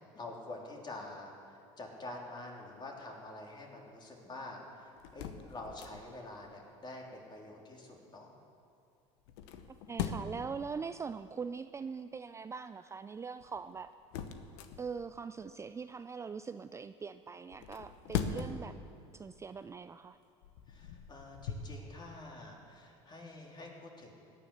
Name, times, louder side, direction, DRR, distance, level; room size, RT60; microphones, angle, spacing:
voice 1, 0.1-8.3 20.7-24.2, left 2 dB, 30° left, -1 dB, 3.3 m, -47 dB
sound 1, 5.0-6.3 9.2-10.5 13.4-15.2 17.5-18.8 19.3-19.5 20.2-21.8, left 7 dB, 75° left, 1.1 m, -40 dB
voice 2, 9.9-13.9 14.8-18.7 19.1-20.2, right 5 dB, 20° right, 11 dB, 0.4 m, -42 dB
17.0 x 10.0 x 6.7 m, 2.5 s
supercardioid pair, 90°, 15 cm